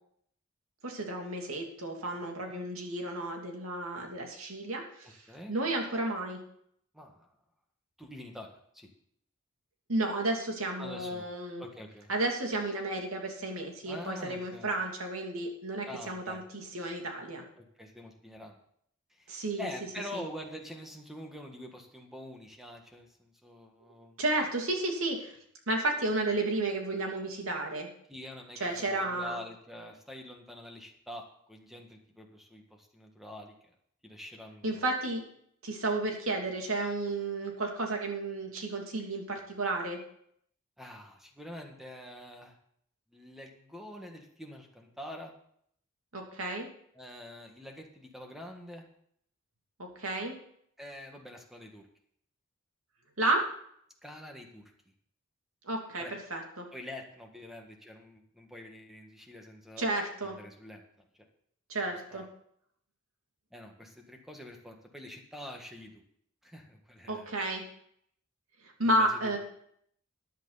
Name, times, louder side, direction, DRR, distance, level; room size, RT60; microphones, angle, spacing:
voice 1, 0.8-5.2 5.5-6.4 9.9-11.6 12.1-17.4 19.3-19.7 20.1-20.2 24.2-25.3 25.7-27.9 28.6-29.4 34.6-35.2 35.6-40.0 46.1-46.7 49.8-50.3 53.2-53.4 55.6-56.7 59.8-60.4 61.7-62.2 67.1-67.6 68.6-69.4, right 2 dB, 80° right, 2 dB, 2.7 m, -32 dB
voice 2, 6.9-7.3 8.0-8.9 10.8-11.3 11.6-12.1 13.9-14.7 15.9-16.4 17.6-18.6 19.1-24.2 28.1-33.7 34.0-34.9 40.8-42.6 43.1-45.3 46.9-48.8 50.8-51.9 54.0-54.7 56.0-56.2 56.7-59.8 60.2-60.8 61.7-61.8 62.1-62.2 63.5-66.0 66.4-67.3 68.8-69.4, left 1 dB, ahead, 2 dB, 1.7 m, -46 dB
14.5 x 10.5 x 4.1 m, 0.67 s
head